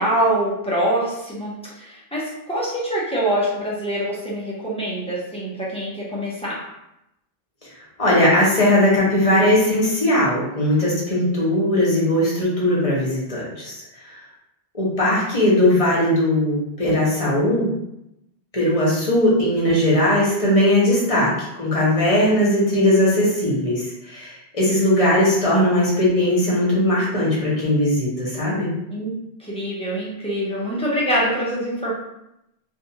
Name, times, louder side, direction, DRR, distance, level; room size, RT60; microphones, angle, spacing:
voice 1, 0.0-6.7 28.9-29.1 29.4-31.9, right 1 dB, 5° left, -7 dB, 0.6 m, -24 dB
voice 2, 8.0-14.1 14.7-17.7 18.5-28.7, left 1 dB, 35° left, -6 dB, 0.8 m, -19 dB
2.6 x 2.3 x 2.8 m, 0.85 s
omnidirectional pair, 1.1 m